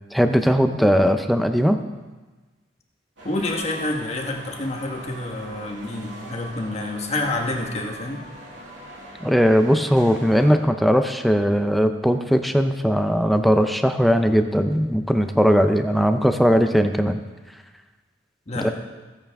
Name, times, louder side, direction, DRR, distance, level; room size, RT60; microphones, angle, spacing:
voice 1, 0.1-1.8 9.2-17.2 18.6-18.7, equal, ahead, 7 dB, 0.5 m, -19 dB
voice 2, 3.2-8.2 18.5-18.7, left 2 dB, 35° left, 1 dB, 1.3 m, -28 dB
sound 1, 3.2-10.6, right 1 dB, 80° right, 2.2 m, -41 dB
15.5 x 8.8 x 3.5 m, 1.3 s
head